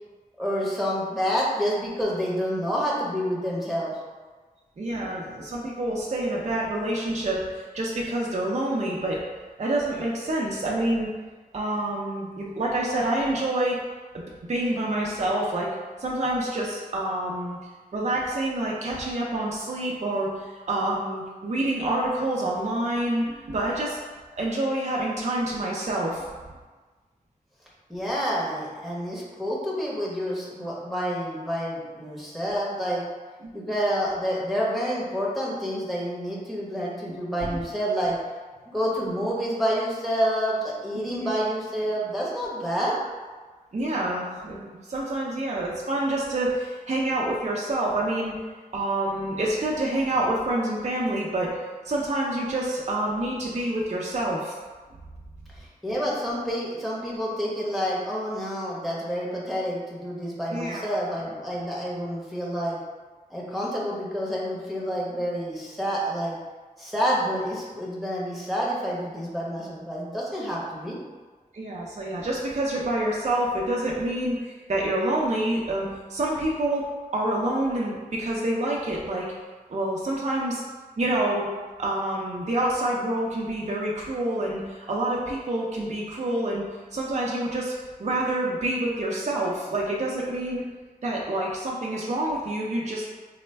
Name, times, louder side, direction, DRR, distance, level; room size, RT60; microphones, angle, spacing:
voice 1, 0.4-3.9 27.9-33.0 33.5-38.2 38.6-42.9 55.5-62.8 63.3-66.4 66.8-71.0, equal, ahead, -6 dB, 0.9 m, -28 dB
voice 2, 4.8-9.2 9.6-11.1 11.5-13.8 14.1-15.7 16.0-17.6 17.9-24.0 24.4-26.2 33.4-33.5 37.5-37.6 40.9-41.3 43.7-44.6 44.9-48.3 48.7-51.5 51.8-54.5 60.5-60.9 71.5-76.8 77.1-79.3 79.7-80.6 81.0-81.5 81.8-86.6 86.9-87.7 88.0-90.6 91.0-93.0, right 1 dB, 50° right, -3 dB, 0.5 m, -27 dB
4.1 x 2.1 x 3.2 m, 1.3 s
wide cardioid pair, 80°, 15 cm